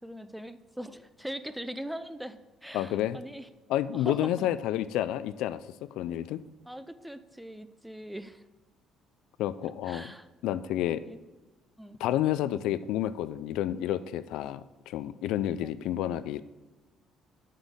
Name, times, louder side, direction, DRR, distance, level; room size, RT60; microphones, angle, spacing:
voice 1, 0.0-3.5 3.9-4.5 6.7-8.4 9.8-10.3 10.8-11.2 11.8-12.0 15.6-15.8, equal, ahead, 12 dB, 0.3 m, -41 dB
voice 2, 2.7-3.2 3.7-6.4 9.4-10.1 10.4-11.0 12.0-14.6 14.9-16.4, left 12 dB, 80° left, 15 dB, 0.3 m, -30 dB
8.1 x 7.7 x 3.6 m, 1.2 s
cardioid pair, 160°, 0 cm